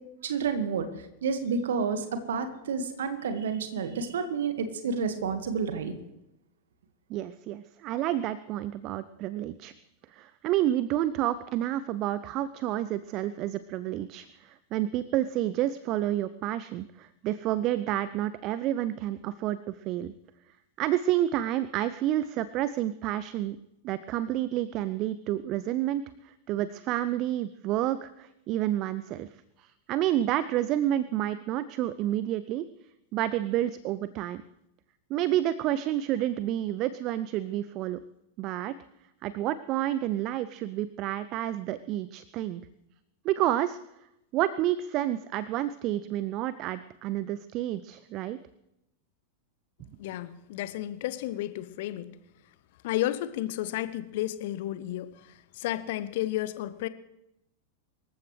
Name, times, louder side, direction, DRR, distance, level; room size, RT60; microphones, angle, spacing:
voice 1, 0.2-0.9 1.2-5.9, right 5 dB, 60° right, 8 dB, 1.8 m, -30 dB
voice 2, 7.1-9.7 10.1-20.1 20.8-23.6 23.8-29.3 29.6-32.7 33.1-34.4 35.1-38.0 38.4-38.7 39.2-42.6 43.2-43.8 44.3-48.4, right 13 dB, 40° right, 15 dB, 0.6 m, -29 dB
voice 3, 50.0-52.1 52.8-55.1 55.6-56.9, left 14 dB, 50° left, 15 dB, 0.9 m, -32 dB
25.0 x 14.5 x 3.3 m, 0.85 s
figure-of-eight pair, 90°, 0 cm